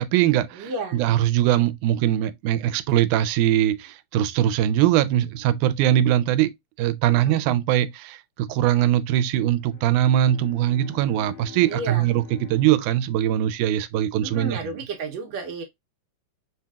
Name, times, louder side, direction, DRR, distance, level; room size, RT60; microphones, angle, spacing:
voice 1, 0.0-6.5 6.8-14.8, right 12 dB, 85° right, 2.1 m, -21 dB
voice 2, 0.6-1.0 7.1-7.4 11.7-12.1 14.2-15.6, right 3 dB, 70° right, 1.8 m, -32 dB
Bowed string instrument, 9.5-13.8, left 7 dB, 70° left, 2.5 m, -45 dB
5.5 x 2.8 x 2.3 m
omnidirectional pair, 3.5 m